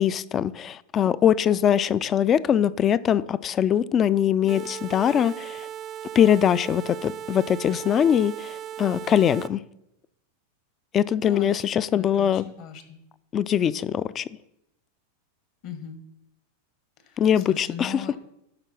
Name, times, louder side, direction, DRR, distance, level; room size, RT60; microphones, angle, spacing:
voice 1, 0.0-5.7 6.1-9.6 10.9-12.5 13.3-14.2 17.2-18.0, left 9 dB, 30° left, 0.3 m, -22 dB
sound 1, 4.5-9.5, right 10 dB, 30° right, 0.5 m, -37 dB
voice 2, 11.2-11.6 11.9-13.0 15.6-16.0 17.0-18.2, left 7 dB, 50° left, 1.3 m, -39 dB
11.5 x 3.9 x 6.0 m
supercardioid pair, 130°, 0 cm